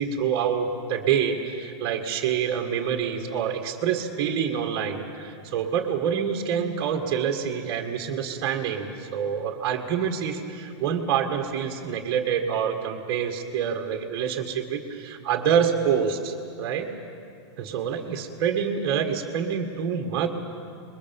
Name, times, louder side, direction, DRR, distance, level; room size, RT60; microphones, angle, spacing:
voice 1, 0.0-16.9 17.6-20.3, right 7 dB, 25° right, 3 dB, 1.7 m, -26 dB
27.0 x 21.5 x 7.2 m, 2.4 s
supercardioid pair, 180°, 15 cm